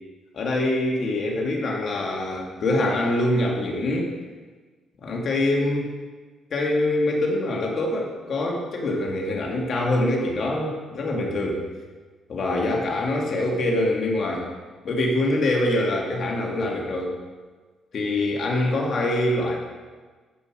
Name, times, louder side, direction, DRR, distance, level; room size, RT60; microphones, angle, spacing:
voice 1, 0.3-4.1 5.0-5.9 6.5-11.6 12.3-14.5 14.8-17.2 17.9-19.6, left 1 dB, 55° left, -1 dB, 2.6 m, -24 dB
14.0 x 5.6 x 6.3 m, 1.4 s
cardioid pair, 90°, 0 cm